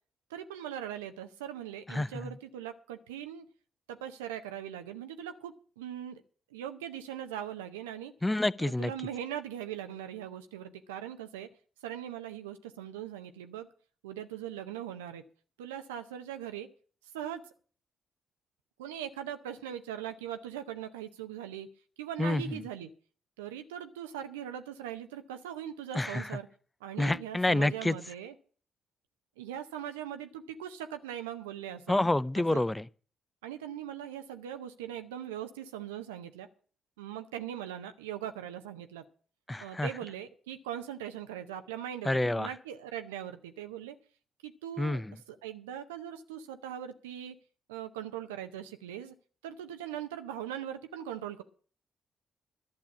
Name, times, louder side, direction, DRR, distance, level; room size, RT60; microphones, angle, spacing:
voice 1, 0.3-3.5 3.9-6.2 6.5-8.1 8.6-11.5 11.8-13.7 14.0-15.2 15.6-16.7 17.1-17.4 18.8-21.7 22.0-22.9 23.4-26.5 26.8-28.3 29.4-32.0 32.4-32.6 33.4-36.5 37.0-39.1 39.6-44.0 44.4-45.0 45.3-47.4 47.7-49.1 49.4-51.4, right 10 dB, 85° right, 0.6 m, -40 dB
voice 2, 1.9-2.3 8.2-8.9 22.2-22.6 25.9-26.3 27.0-28.0 31.9-32.8 39.5-39.9 42.1-42.5 44.8-45.1, left 2 dB, 15° left, 0.5 m, -28 dB
11.5 x 7.1 x 8.2 m
hypercardioid pair, 40°, 0 cm